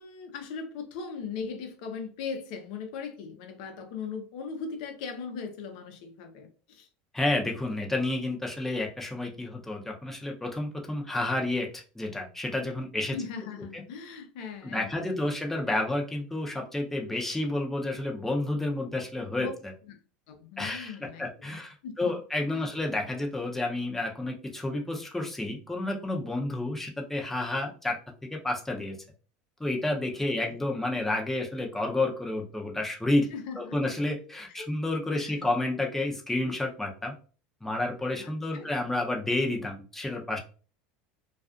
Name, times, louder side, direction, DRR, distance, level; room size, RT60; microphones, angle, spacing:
voice 1, 0.0-6.9 13.1-15.2 19.4-19.5 19.9-20.0 20.3-22.1 22.5-22.7 30.2-30.3 33.3-33.8 34.5-34.7 35.1-35.5 38.2-38.7, left 5 dB, 75° left, 5 dB, 0.7 m, -39 dB
voice 2, 7.1-13.2 13.7-13.8 14.6-19.5 20.6-28.0 28.3-28.9 29.6-33.3 33.6-37.1 37.6-40.4, left 2 dB, 5° left, 1 dB, 0.6 m, -30 dB
2.4 x 2.4 x 2.4 m, 0.37 s
supercardioid pair, 120°, 4 cm